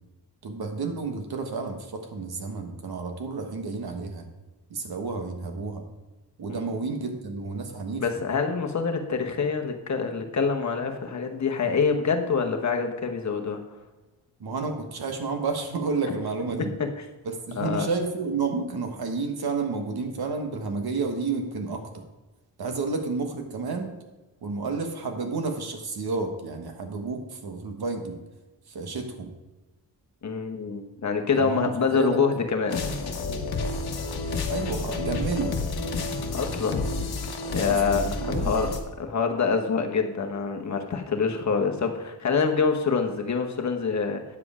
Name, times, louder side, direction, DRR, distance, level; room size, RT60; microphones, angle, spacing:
voice 1, 0.4-4.3 4.7-5.9 6.4-8.1 14.4-16.8 17.2-22.0 22.6-24.0 24.4-28.2 28.7-29.3 31.3-32.2 34.5-35.6 37.6-38.7, right 4 dB, 60° right, 5 dB, 1.4 m, -31 dB
voice 2, 8.0-13.6 17.6-17.9 30.2-32.8 36.3-37.0 37.5-44.2, left 5 dB, 40° left, 4 dB, 1.1 m, -26 dB
sound 1, 32.7-38.8, left 3 dB, 65° left, 1.2 m, -30 dB
9.7 x 7.7 x 4.9 m, 1.1 s
wide cardioid pair, 180°, 41 cm